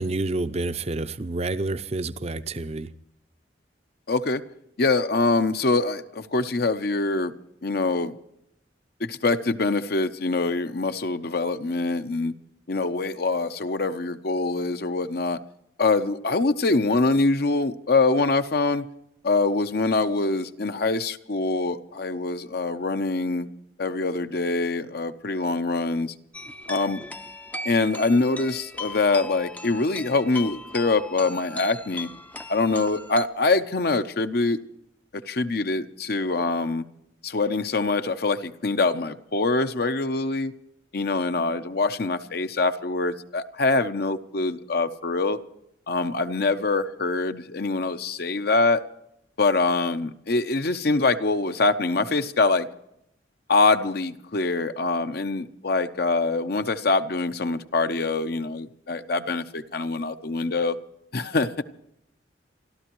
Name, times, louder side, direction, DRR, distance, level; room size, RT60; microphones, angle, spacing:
voice 1, 0.0-2.9, right 2 dB, 35° right, 13 dB, 0.6 m, -28 dB
voice 2, 4.1-4.4 4.8-7.3 7.6-8.1 9.0-12.3 12.7-15.4 15.8-18.9 19.2-23.5 23.8-26.1 26.7-27.0 27.6-32.1 32.5-34.6 35.3-36.8 37.2-40.5 40.9-45.4 45.9-48.8 49.4-52.7 53.5-60.8 61.1-61.6, left 3 dB, 55° left, 10 dB, 0.8 m, -24 dB
sound 1, 26.3-33.2, left 2 dB, 10° left, 0.5 m, -38 dB
29.0 x 13.0 x 3.1 m, 0.81 s
head